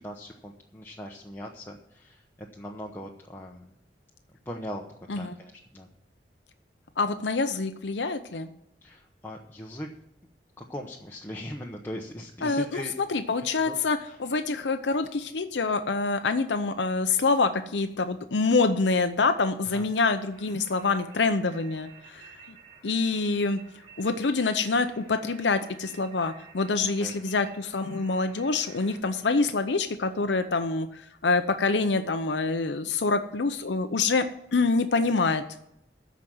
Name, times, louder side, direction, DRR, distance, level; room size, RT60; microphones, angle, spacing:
voice 1, 0.0-2.2 2.5-3.7 4.5-4.8 5.1-5.9 8.8-9.9 10.6-12.9 13.4-13.7 14.1-14.2 19.7-19.9 27.0-27.1, equal, 15° left, -1 dB, 0.9 m, -39 dB
voice 2, 7.0-8.5 12.4-22.6 22.8-23.6 24.0-34.3 34.5-35.4, left 4 dB, 90° left, 8 dB, 0.7 m, -26 dB
sound 1, 20.3-29.0, right 5 dB, 35° right, 5.7 m, -52 dB
13.5 x 5.1 x 7.7 m, 0.78 s
head